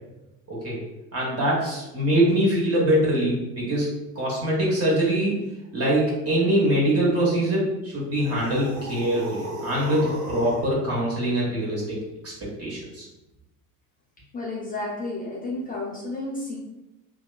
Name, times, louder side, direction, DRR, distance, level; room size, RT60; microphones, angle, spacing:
voice 1, 0.5-0.8 1.1-3.9 4.1-5.4 5.7-12.0 12.2-12.3 12.6-13.1, right 1 dB, 30° right, -5 dB, 1.1 m, -23 dB
sound 1, 8.1-10.7, right 1 dB, 80° right, 1.0 m, -35 dB
voice 2, 14.3-16.6, left 2 dB, 20° left, -4 dB, 0.4 m, -31 dB
2.8 x 2.2 x 2.3 m, 0.98 s
figure-of-eight pair, 65°, 47 cm